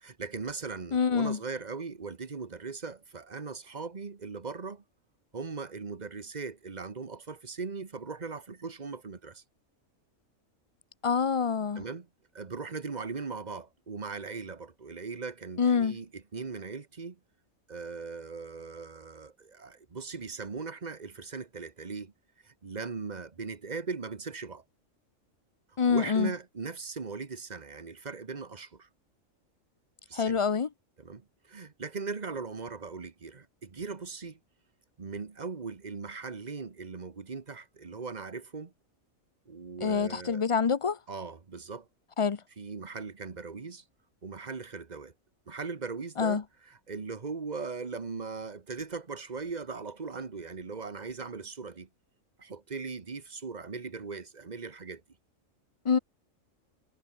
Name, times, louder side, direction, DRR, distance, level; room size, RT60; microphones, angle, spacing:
voice 1, 0.0-4.8 5.3-9.4 11.8-12.1 12.3-17.2 17.7-22.1 22.4-24.6 25.9-28.9 30.1-30.4 31.0-34.4 35.0-38.7 39.5-40.4 41.1-41.9 42.6-43.8 44.2-45.1 45.5-46.4 46.7-51.9 52.4-55.0, right 4 dB, 35° right, 1.3 m, -39 dB
voice 2, 0.9-1.4 11.0-11.8 15.6-16.0 25.8-26.3 30.1-30.7 39.8-41.0 42.2-42.4 46.2-46.4 55.8-56.0, left 6 dB, 40° left, 0.4 m, -26 dB
omnidirectional pair, 1.4 m